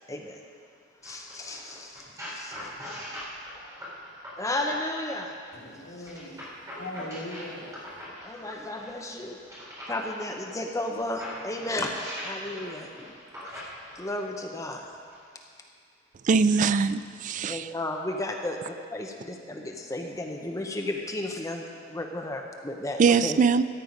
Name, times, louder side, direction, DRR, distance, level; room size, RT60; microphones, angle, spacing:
voice 1, 0.1-0.4 1.0-2.7 4.4-5.3 8.2-9.4 9.9-11.9 12.2-12.9 13.9-14.8 17.5-23.4, left 1 dB, 15° left, 2 dB, 0.8 m, -33 dB
sound 1, 1.0-5.1 6.0-10.2 10.8-14.2 15.0-15.2, equal, 15° right, 3.8 m, -41 dB
voice 2, 5.5-8.1, left 1 dB, 70° left, -6 dB, 3.1 m, -40 dB
voice 3, 16.3-17.6 23.0-23.6, right 5 dB, 40° right, 13 dB, 0.3 m, -22 dB
14.5 x 9.1 x 5.2 m, 2.2 s
head